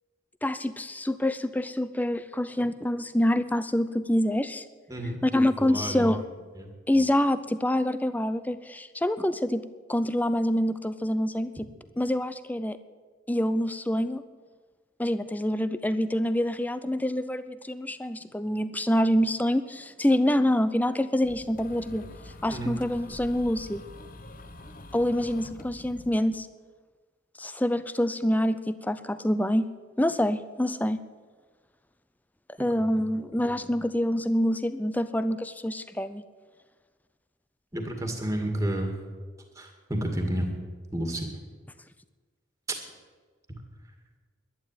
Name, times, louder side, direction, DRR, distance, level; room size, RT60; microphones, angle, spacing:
voice 1, 0.4-4.6 5.2-6.2 6.9-9.6 9.9-11.7 12.0-12.8 13.3-14.2 15.0-22.0 22.4-23.8 24.9-26.5 27.4-29.7 30.0-31.0 32.6-36.2, left 1 dB, 10° left, 13 dB, 0.5 m, -26 dB
voice 2, 4.9-6.3 6.6-6.7 22.5-22.8 32.6-32.9 33.4-33.6 37.7-39.0 39.6-40.5 40.9-41.3, right 1 dB, 15° right, 3 dB, 2.0 m, -31 dB
sound 1, 21.2-26.1, left 1 dB, 40° left, 0.9 m, -45 dB
11.5 x 11.0 x 9.0 m, 1.5 s
head